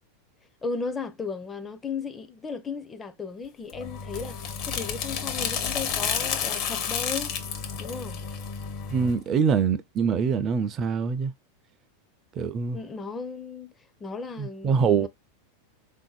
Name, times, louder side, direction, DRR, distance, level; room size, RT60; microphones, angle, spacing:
voice 1, 0.6-7.3 7.8-8.2 12.7-13.7 14.0-15.1, left 4 dB, 15° left, 0.5 m, -35 dB
sound 1, 3.7-9.2, left 7 dB, 50° left, 0.8 m, -31 dB
voice 2, 8.9-11.3 12.4-12.8 14.4-15.1, right 6 dB, 35° right, 0.5 m, -24 dB
3.6 x 2.6 x 2.3 m
hypercardioid pair, 120°, 0 cm